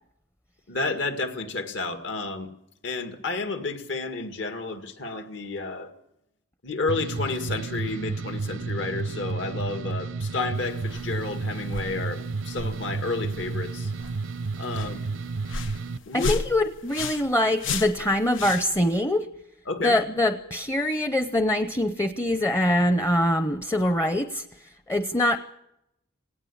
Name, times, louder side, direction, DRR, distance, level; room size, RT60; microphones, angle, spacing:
voice 1, 0.7-2.5 2.8-5.9 6.6-13.9 14.6-15.0 16.1-16.3 19.7-20.0, left 3 dB, 70° left, 7 dB, 2.0 m, -31 dB
sound 1, 6.9-16.0, right 4 dB, 80° right, 0.7 m, -32 dB
sound 2, 10.6-19.0, left 4 dB, 90° left, 1.2 m, -36 dB
voice 2, 16.1-19.3 19.8-25.4, left 1 dB, 15° left, 10 dB, 0.7 m, -24 dB
18.0 x 17.0 x 8.6 m, 0.82 s
head